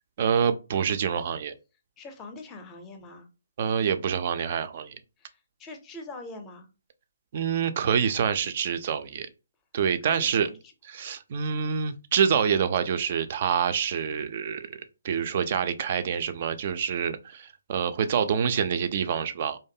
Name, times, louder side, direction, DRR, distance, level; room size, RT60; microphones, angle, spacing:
voice 1, 0.2-1.5 3.6-5.0 7.3-9.3 9.7-10.5 10.9-14.7 15.0-19.6, right 7 dB, 45° right, 0.3 m, -26 dB
voice 2, 2.0-3.3 5.2-6.7 10.1-10.6, left 2 dB, 15° left, 0.5 m, -43 dB
2.5 x 2.3 x 2.6 m
figure-of-eight pair, 135°, 0 cm